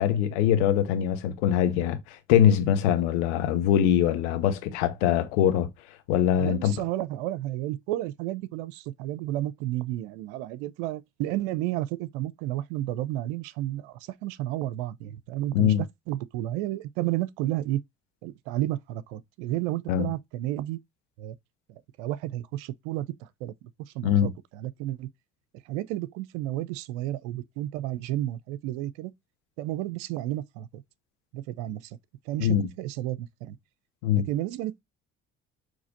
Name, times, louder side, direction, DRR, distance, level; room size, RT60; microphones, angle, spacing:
voice 1, 0.0-5.7 6.1-6.7 15.5-15.8 19.9-20.1 24.0-24.3 32.4-32.7 34.0-34.3, left 10 dB, 75° left, 1.0 m, -23 dB
voice 2, 6.4-15.7 16.1-17.8 18.2-20.8 21.2-21.4 21.7-23.5 23.9-25.1 25.7-29.1 29.6-30.8 31.3-32.0 32.3-33.6 34.1-34.8, right 14 dB, 75° right, 0.5 m, -32 dB
6.2 x 3.2 x 2.6 m
hypercardioid pair, 50°, 35 cm